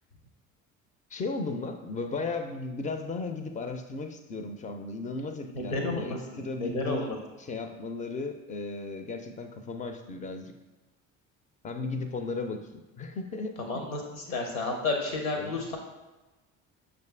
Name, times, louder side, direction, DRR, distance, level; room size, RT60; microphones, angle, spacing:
voice 1, 1.1-10.5 11.6-13.6 15.4-15.6, left 3 dB, 20° left, 7 dB, 0.4 m, -35 dB
voice 2, 5.5-7.2 13.6-15.8, left 3 dB, 85° left, 2 dB, 0.8 m, -31 dB
6.3 x 2.5 x 3.3 m, 1.1 s
figure-of-eight pair, 55°, 41 cm